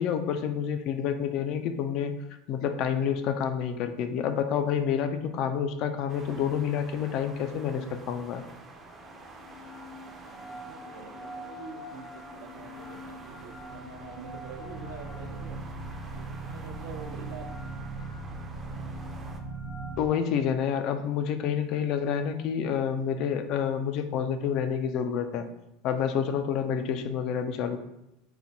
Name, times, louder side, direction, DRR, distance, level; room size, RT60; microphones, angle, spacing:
voice 1, 0.0-2.1 2.5-8.4 20.0-25.5 25.8-27.8, left 8 dB, 55° left, 8 dB, 0.3 m, -28 dB
sound 1, 6.1-19.4, right 3 dB, 25° right, 0.5 m, -49 dB
sound 2, 8.8-20.1, right 2 dB, 75° left, 1.5 m, -41 dB
voice 2, 10.3-15.6 16.2-17.6, right 5 dB, 75° right, 3 dB, 0.6 m, -45 dB
4.2 x 2.1 x 2.7 m, 0.89 s
supercardioid pair, 125°, 0 cm